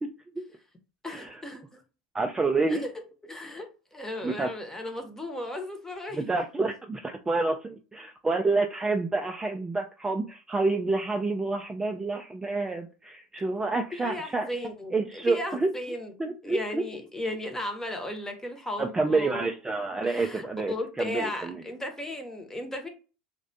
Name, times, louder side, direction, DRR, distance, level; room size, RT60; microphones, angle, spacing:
voice 1, 1.0-1.8 2.7-2.9 3.2-3.7 3.9-6.3 13.9-16.1 16.4-19.5 20.0-22.9, left 1 dB, 10° left, 0.7 m, -35 dB
voice 2, 2.1-2.9 4.2-4.5 6.1-14.5 14.9-15.7 16.2-16.8 18.8-21.6, right 3 dB, 15° right, 0.3 m, -28 dB
2.4 x 2.1 x 2.6 m
hypercardioid pair, 85°, 4 cm